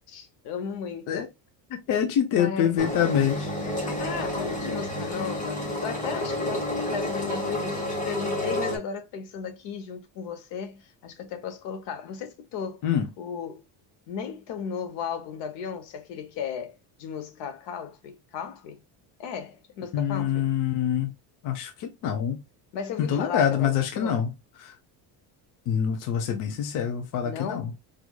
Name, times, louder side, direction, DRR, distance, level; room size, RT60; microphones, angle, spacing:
voice 1, 0.1-1.3 2.3-2.8 3.8-12.8 13.2-13.6 14.1-18.8 19.2-20.5 22.7-24.3 27.2-27.8, left 7 dB, 70° left, 1.0 m, -35 dB
voice 2, 1.7-3.5 12.8-13.1 19.9-21.1 21.4-22.4 23.0-24.3 24.6-24.7 25.7-27.7, left 9 dB, 45° left, 0.6 m, -25 dB
Engine, 2.8-8.8, left 1 dB, 15° left, 1.0 m, -30 dB
4.6 x 2.5 x 2.2 m
cardioid pair, 165°, 45 cm